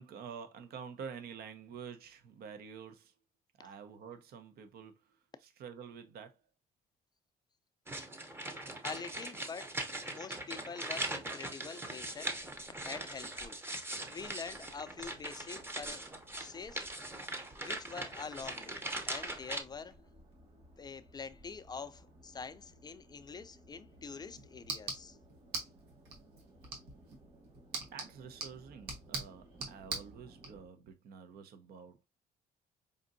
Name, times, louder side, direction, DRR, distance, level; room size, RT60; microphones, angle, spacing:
voice 1, 0.0-3.1 3.6-6.4 27.9-32.1, right 6 dB, 75° right, 0.7 m, -48 dB
sound 1, 7.9-19.6, right 2 dB, 15° right, 0.7 m, -41 dB
voice 2, 8.8-12.4 12.8-13.6 14.1-16.1 16.4-16.9 17.6-20.0 20.8-25.2, left 5 dB, 25° left, 0.3 m, -45 dB
sound 2, 11.9-30.7, right 1 dB, 40° right, 1.3 m, -60 dB
sound 3, 23.9-30.5, right 4 dB, 90° right, 1.4 m, -44 dB
5.0 x 2.6 x 2.5 m
cardioid pair, 125°, 16 cm